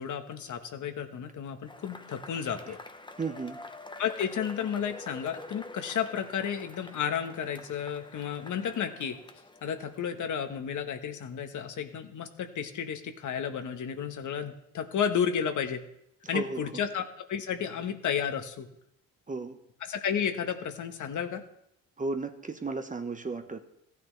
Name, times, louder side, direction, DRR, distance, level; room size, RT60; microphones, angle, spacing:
voice 1, 0.0-2.8 4.0-9.2 9.6-15.8 16.3-18.7 19.9-21.4, left 8 dB, 60° left, 6 dB, 1.2 m, -32 dB
Cheering / Applause / Crowd, 1.6-10.3, left 2 dB, 15° left, 0.9 m, -47 dB
voice 2, 3.2-3.6 16.3-16.6 19.3-19.6 22.0-23.6, right 3 dB, 20° right, 7 dB, 1.0 m, -34 dB
15.0 x 9.5 x 3.2 m, 0.77 s
supercardioid pair, 75°, 35 cm